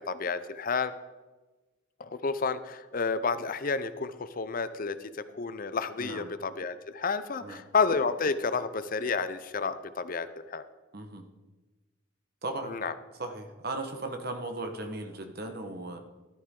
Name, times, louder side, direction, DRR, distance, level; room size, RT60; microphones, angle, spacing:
voice 1, 0.1-0.9 2.0-5.0 5.3-10.6 12.7-12.9, left 4 dB, 45° left, 13 dB, 0.6 m, -30 dB
voice 2, 6.0-6.3 7.4-7.7 10.9-11.2 12.4-12.8 13.2-16.0, right 2 dB, 50° right, 5 dB, 1.3 m, -37 dB
13.5 x 11.5 x 3.8 m, 1.2 s
head